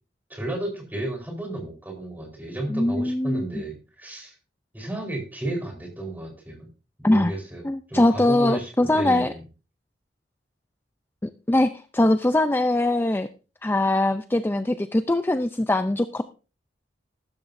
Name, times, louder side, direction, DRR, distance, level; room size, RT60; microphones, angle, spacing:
voice 1, 0.3-4.3 4.7-6.7 7.0-7.6 7.9-9.4, right 1 dB, 10° right, 1 dB, 4.0 m, -33 dB
voice 2, 2.7-3.6 7.0-7.3 7.6-9.3 11.2-13.3 13.6-16.2, left 1 dB, 10° left, 10 dB, 0.4 m, -22 dB
14.0 x 13.0 x 2.6 m, 0.34 s
head